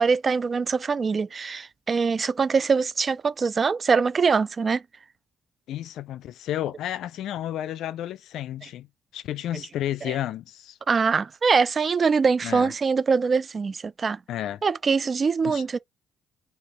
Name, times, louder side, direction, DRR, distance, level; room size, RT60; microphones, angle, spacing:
voice 1, 0.0-4.8 10.0-10.1 10.9-14.2 14.6-15.8, right 5 dB, 40° right, 0.4 m, -23 dB
voice 2, 5.7-8.9 9.1-10.8 12.4-12.7 14.3-14.6 15.4-15.6, left 12 dB, 80° left, 0.4 m, -32 dB
3.4 x 2.8 x 4.3 m
cardioid pair, 90°, 0 cm